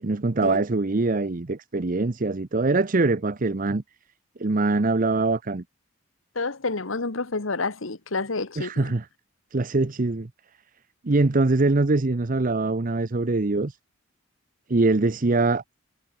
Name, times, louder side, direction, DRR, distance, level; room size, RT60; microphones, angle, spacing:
voice 1, 0.0-3.8 4.4-5.6 8.6-9.1 9.5-10.3 11.0-13.8 14.7-15.6, right 3 dB, 40° right, 0.8 m, -23 dB
voice 2, 6.3-8.9, left 3 dB, 80° left, 1.6 m, -29 dB
head